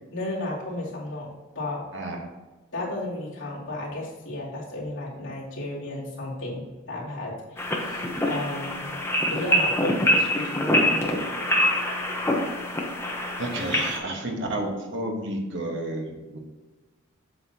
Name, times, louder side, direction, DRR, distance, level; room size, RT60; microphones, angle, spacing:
voice 1, 0.1-1.8 2.7-8.9 9.3-11.1, left 2 dB, 65° left, -6 dB, 2.4 m, -34 dB
sound 1, 7.6-14.0, equal, 10° left, 0.8 m, -25 dB
voice 2, 13.4-16.4, right 1 dB, 60° right, 1 dB, 1.2 m, -31 dB
7.9 x 6.6 x 2.8 m, 1.2 s
head